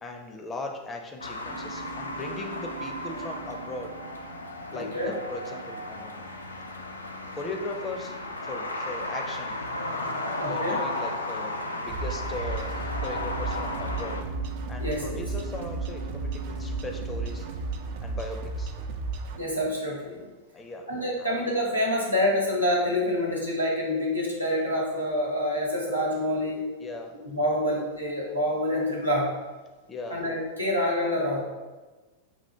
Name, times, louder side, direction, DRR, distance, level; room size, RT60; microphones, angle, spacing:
voice 1, 0.0-3.9 4.7-6.3 7.3-8.2 8.4-14.2 14.7-17.5 18.0-18.7 20.5-20.9 21.2-21.3 26.8-27.2 29.9-30.2, left 2 dB, 20° left, 3 dB, 0.5 m, -38 dB
sound 1, 1.2-14.2, left 1 dB, 80° left, 0.4 m, -34 dB
sound 2, 1.5-5.5 11.6-18.6, right 5 dB, 30° right, 0.7 m, -44 dB
voice 2, 4.7-5.1 10.4-10.8 14.8-15.2 19.3-20.3 20.9-26.6 27.3-29.3 30.1-31.4, left 1 dB, 90° right, -3 dB, 1.0 m, -27 dB
sound 3, 11.9-19.4, right 3 dB, 50° right, 0.3 m, -34 dB
5.7 x 2.4 x 3.3 m, 1.2 s
figure-of-eight pair, 90°, 0 cm